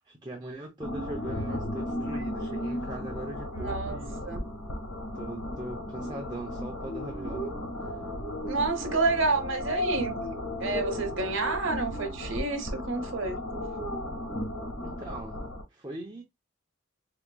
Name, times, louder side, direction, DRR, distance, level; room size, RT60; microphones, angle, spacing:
voice 1, 0.1-4.2 5.1-7.5 7.8-8.0 14.8-16.2, right 1 dB, 20° right, 0.6 m, -41 dB
sound 1, 0.8-15.6, left 1 dB, 85° left, 1.6 m, -35 dB
voice 2, 3.5-4.0 4.2-4.4 8.5-10.2 10.6-13.4, right 3 dB, 65° right, 1.0 m, -29 dB
4.8 x 2.9 x 2.2 m
head